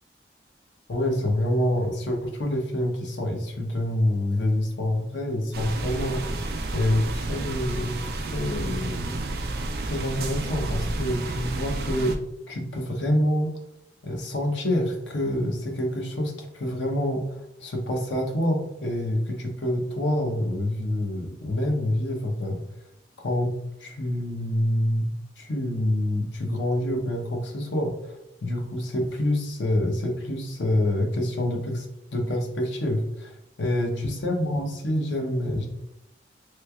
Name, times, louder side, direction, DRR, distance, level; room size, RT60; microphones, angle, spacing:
voice 1, 0.9-9.2 9.8-12.2 12.5-13.6 14.0-22.6 23.2-23.5 23.8-25.1 25.4-28.2 28.4-31.9 32.1-35.7, left 1 dB, 90° left, 2 dB, 0.7 m, -27 dB
sound 1, 5.5-12.2, right 2 dB, 60° right, 0.4 m, -30 dB
3.2 x 3.1 x 2.3 m, 0.82 s
head